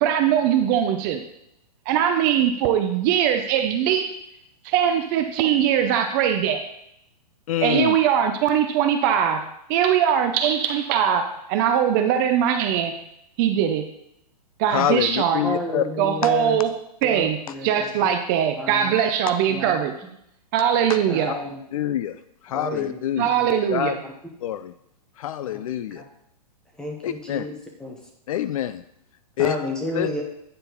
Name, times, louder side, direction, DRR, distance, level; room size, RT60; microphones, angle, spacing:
voice 1, 0.0-1.2 1.9-4.2 4.6-6.6 7.6-9.4 9.7-13.0 13.4-13.9 14.6-15.4 16.0-16.7 17.0-17.4 17.6-19.9 20.5-21.3 23.2-24.0, right 9 dB, 30° right, 7 dB, 0.5 m, -21 dB
voice 2, 7.5-8.0 14.7-15.8 21.7-22.2 22.4-23.3 23.7-24.0 24.4-24.7 25.2-26.0 27.0-27.5 28.3-28.8 29.4-29.6 29.9-30.1, left 11 dB, 55° left, 13 dB, 0.4 m, -25 dB
voice 3, 15.4-16.6 17.0-17.3 17.5-17.8 18.6-18.9 19.5-19.8 21.1-21.6 22.5-23.4 24.0-24.1 25.4-25.6 26.0-26.1 26.8-28.0 29.4-30.2, left 1 dB, 5° left, 0 dB, 1.0 m, -31 dB
9.0 x 4.4 x 3.9 m, 0.77 s
hypercardioid pair, 150°, 21 cm